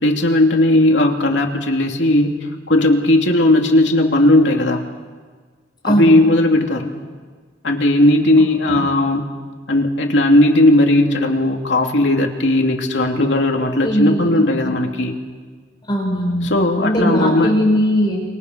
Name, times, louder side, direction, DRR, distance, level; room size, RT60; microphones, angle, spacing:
voice 1, 0.0-4.8 5.8-6.9 7.6-9.3 9.7-15.1 16.4-17.6, left 1 dB, 75° left, 2 dB, 2.9 m, -16 dB
voice 2, 5.9-6.2 13.8-14.3 14.6-14.7 15.9-16.5 16.8-18.2, equal, 25° left, 0 dB, 5.8 m, -18 dB
28.5 x 25.0 x 6.3 m, 1.5 s
head